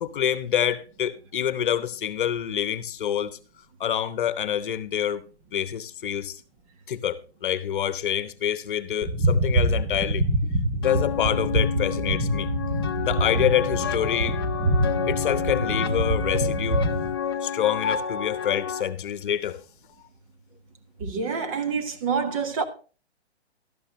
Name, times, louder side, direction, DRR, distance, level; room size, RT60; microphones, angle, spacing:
voice 1, 0.0-3.4 3.8-5.2 5.5-6.4 6.9-10.3 10.8-12.5 13.0-14.4 15.1-16.8 17.4-19.6, left 10 dB, 50° left, 1.1 m, -26 dB
sound 1, 9.0-17.1, right 1 dB, 10° right, 0.9 m, -25 dB
sound 2, 10.8-18.8, left 7 dB, 20° left, 0.5 m, -30 dB
voice 2, 21.0-22.6, right 5 dB, 30° right, 1.4 m, -27 dB
13.0 x 11.5 x 3.1 m
hypercardioid pair, 160°, 34 cm